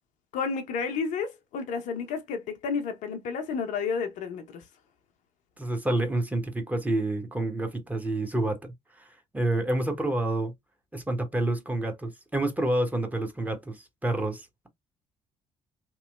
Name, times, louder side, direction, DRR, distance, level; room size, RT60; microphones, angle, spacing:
voice 1, 0.3-4.6, left 5 dB, 55° left, 0.6 m, -31 dB
voice 2, 5.6-9.1 9.3-10.5 10.9-14.7, right 1 dB, 10° right, 1.0 m, -28 dB
3.0 x 2.8 x 2.3 m
figure-of-eight pair, 50°, 15 cm